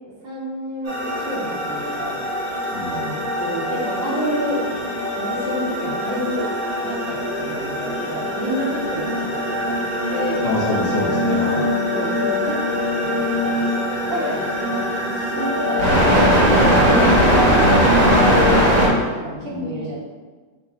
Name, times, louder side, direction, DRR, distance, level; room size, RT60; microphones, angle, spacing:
voice 1, 0.2-2.2 2.5-2.6 3.4-4.6 5.2-6.5 6.8-9.8 10.1-10.4 11.9-15.9 16.1-18.4 18.7-20.0, equal, 85° right, -4 dB, 1.9 m, -30 dB
sound 1, 0.9-18.9, equal, 40° right, 1.9 m, -20 dB
voice 2, 2.7-3.3 10.4-11.7 19.4-19.9, left 2 dB, 55° left, -7 dB, 0.4 m, -26 dB
5.2 x 3.8 x 2.7 m, 1.4 s
omnidirectional pair, 2.0 m